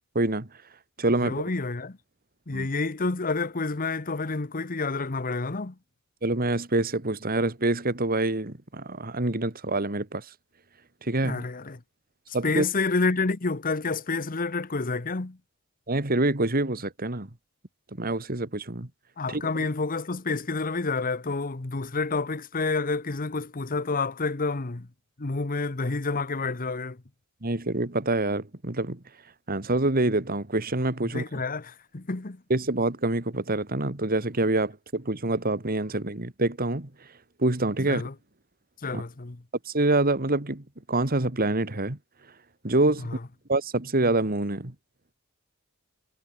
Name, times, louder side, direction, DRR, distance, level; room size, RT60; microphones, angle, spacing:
voice 1, 0.1-0.5 1.0-1.4 2.5-2.7 6.2-10.3 11.0-11.4 12.3-12.7 15.9-17.3 17.9-18.9 19.3-19.4 27.4-29.0 29.5-31.2 32.5-36.9 37.4-38.1 38.9-39.0 39.7-42.0 42.6-43.1 43.5-44.7, right 2 dB, 45° right, 2.3 m, -26 dB
voice 2, 1.2-2.0 2.5-5.7 11.2-11.8 12.4-15.4 19.2-24.9 25.2-27.0 31.1-32.4 37.9-38.1 38.8-39.4 43.0-43.2, left 3 dB, 40° left, 1.0 m, -29 dB
head